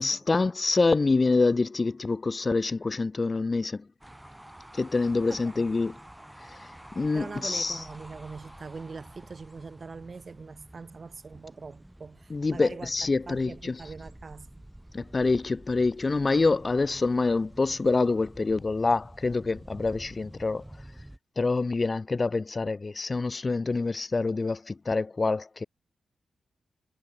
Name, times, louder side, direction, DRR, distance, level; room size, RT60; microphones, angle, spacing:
voice 1, 0.0-3.9 4.7-6.0 6.4-7.8 12.3-13.8 14.9-20.6 21.4-25.7, left 3 dB, 40° left, 0.5 m, -26 dB
sound 1, 4.0-21.2, right 1 dB, 10° right, 5.5 m, -49 dB
voice 2, 5.3-5.7 7.1-12.9 13.3-14.5, right 4 dB, 50° right, 0.7 m, -42 dB
cardioid pair, 50°, 0 cm